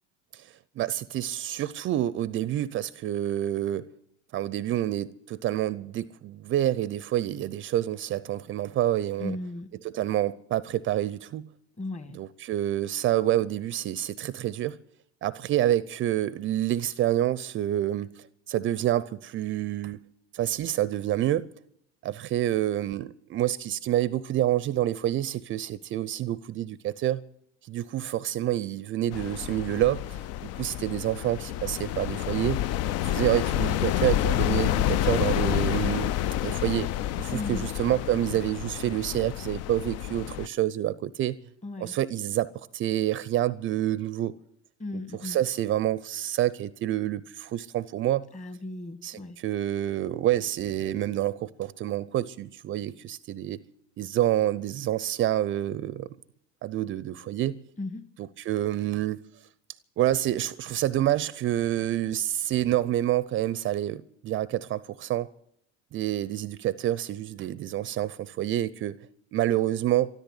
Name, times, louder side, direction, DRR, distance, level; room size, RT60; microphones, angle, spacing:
voice 1, 0.3-3.8 4.3-9.4 9.8-11.5 12.1-14.8 15.2-20.0 20.3-21.5 22.0-27.2 27.6-32.6 33.0-36.1 36.4-36.9 37.2-41.4 41.8-44.3 45.2-48.3 49.0-53.6 54.0-56.1 56.6-57.6 58.5-59.2 60.0-65.3 65.9-69.0 69.3-70.1, right 13 dB, 35° right, 0.6 m, -28 dB
voice 2, 9.2-9.7 11.8-12.2 37.3-37.7 41.6-41.9 44.8-45.4 48.3-49.4 57.8-58.0, left 2 dB, 20° left, 1.7 m, -36 dB
sound 1, 29.1-40.5, left 12 dB, 45° left, 0.6 m, -29 dB
13.5 x 13.0 x 8.2 m
hypercardioid pair, 85°, 35 cm